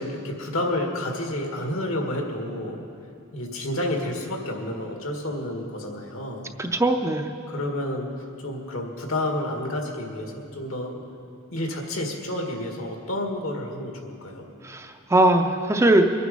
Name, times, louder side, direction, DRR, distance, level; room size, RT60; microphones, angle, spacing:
voice 1, 0.0-2.8 3.3-6.5 7.5-8.1 8.4-11.0 11.5-14.5, left 1 dB, 70° left, 2 dB, 1.9 m, -30 dB
voice 2, 6.6-7.3 14.6-16.1, right 1 dB, 15° right, 5 dB, 0.5 m, -20 dB
22.5 x 9.3 x 5.3 m, 2.5 s
head